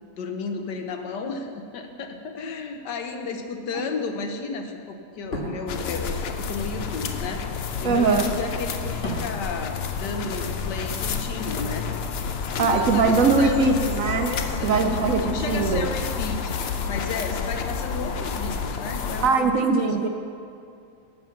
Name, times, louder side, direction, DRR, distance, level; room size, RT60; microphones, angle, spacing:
voice 1, 0.2-7.4 7.8-11.9 12.6-13.8 14.3-19.5, left 4 dB, 85° left, 5 dB, 1.6 m, -33 dB
sound 1, 5.1-10.4 10.7-12.5 12.8-13.0, equal, 40° left, 1.7 m, -38 dB
sound 2, 5.7-19.3, left 6 dB, 60° left, 0.6 m, -29 dB
voice 2, 7.8-8.3 12.6-14.3 14.6-15.9 19.2-20.1, right 4 dB, 60° right, 5 dB, 1.0 m, -21 dB
12.0 x 8.3 x 5.9 m, 2.4 s
omnidirectional pair, 1.8 m